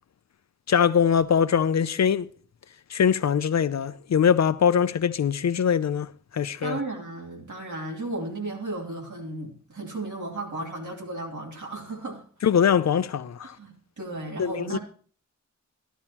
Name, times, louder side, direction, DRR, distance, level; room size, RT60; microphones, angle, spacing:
voice 1, 0.7-2.3 2.9-6.8 12.4-13.6 14.4-14.8, left 7 dB, 65° left, 0.5 m, -22 dB
voice 2, 6.6-12.2 13.4-14.8, right 2 dB, 80° right, 2.9 m, -34 dB
12.5 x 12.0 x 2.9 m
wide cardioid pair, 60°, 30 cm